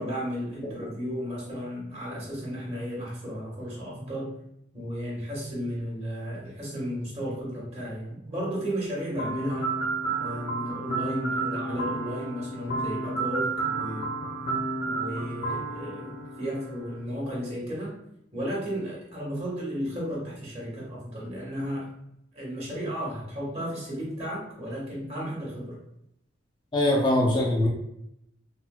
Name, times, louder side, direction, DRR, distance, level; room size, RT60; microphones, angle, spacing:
voice 1, 0.0-4.3 4.7-9.7 10.2-14.2 14.8-17.9 18.3-21.9 22.3-25.8, equal, 35° right, -5 dB, 1.2 m, -34 dB
sound 1, 9.2-17.0, right 3 dB, 60° left, 0.8 m, -31 dB
voice 2, 26.7-27.7, left 1 dB, 25° left, -1 dB, 0.4 m, -22 dB
4.1 x 2.2 x 2.2 m, 0.80 s
head